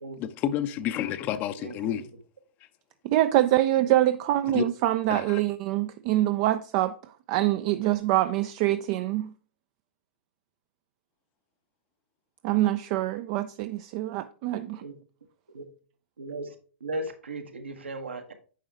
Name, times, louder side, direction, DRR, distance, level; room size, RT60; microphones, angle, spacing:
voice 1, 0.2-2.1 4.5-4.6 5.1-5.4, left 11 dB, 30° left, 0.6 m, -30 dB
voice 2, 3.0-6.9 7.3-9.3 12.4-14.8, right 14 dB, 35° right, 0.4 m, -25 dB
voice 3, 16.2-16.5 16.8-18.3, right 2 dB, 75° right, 1.3 m, -36 dB
9.2 x 5.5 x 3.5 m
figure-of-eight pair, 110°, 6 cm